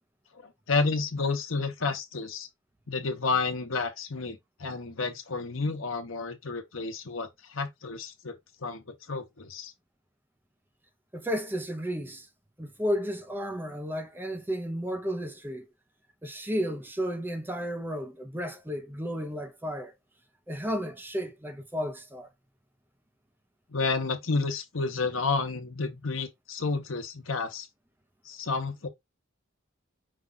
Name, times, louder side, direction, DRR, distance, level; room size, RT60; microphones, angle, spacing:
voice 1, 0.4-2.5 2.9-8.3 8.6-9.7 23.7-27.7 28.2-28.9, left 4 dB, 80° left, 1.0 m, -31 dB
voice 2, 11.1-12.3 12.6-15.6 16.2-19.9 20.5-22.3, equal, 10° right, 0.6 m, -33 dB
5.2 x 2.4 x 3.9 m
head